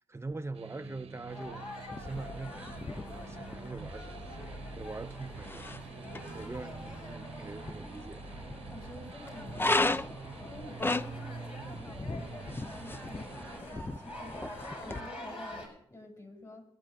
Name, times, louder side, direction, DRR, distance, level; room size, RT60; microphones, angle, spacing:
voice 1, 0.0-1.6 2.0-8.3, right 3 dB, 25° right, 0.7 m, -43 dB
sound 1, 0.5-13.6, right 5 dB, 80° right, 1.1 m, -47 dB
sound 2, 1.3-15.7, left 1 dB, 70° left, 6.4 m, -46 dB
sound 3, 1.9-15.0, left 2 dB, 20° left, 0.6 m, -37 dB
voice 2, 8.7-16.6, left 1 dB, 35° left, 6.0 m, -50 dB
27.5 x 10.0 x 2.5 m
cardioid pair, 55°, 10 cm